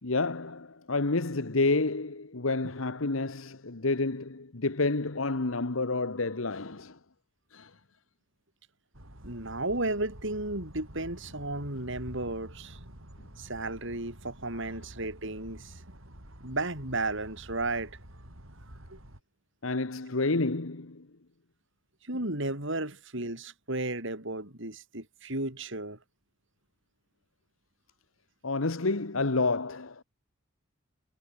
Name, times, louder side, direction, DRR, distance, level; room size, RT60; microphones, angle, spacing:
voice 1, 0.0-7.0 7.5-7.7 14.5-14.7 19.6-21.1 28.4-30.0, left 3 dB, 80° left, 1.4 m, -29 dB
sound 1, 8.9-19.2, equal, 85° right, 7.0 m, -49 dB
voice 2, 9.2-12.8 13.4-15.7 16.4-18.0 18.9-19.0 22.1-26.0, right 2 dB, 65° right, 7.9 m, -34 dB
head